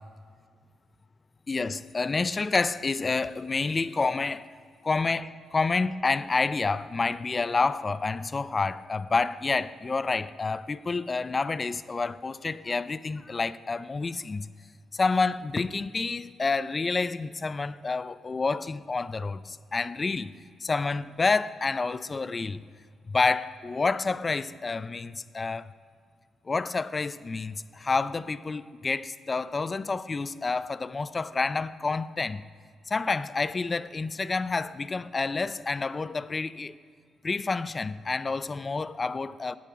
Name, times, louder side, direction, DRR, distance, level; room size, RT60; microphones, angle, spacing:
voice 1, 1.5-4.5 4.8-14.5 14.9-20.3 20.6-22.6 23.0-25.7 26.5-32.4 32.9-36.7 37.2-39.6, left 4 dB, 35° left, 0.3 m, -29 dB
15.5 x 9.1 x 2.5 m
supercardioid pair, 55°, 0 cm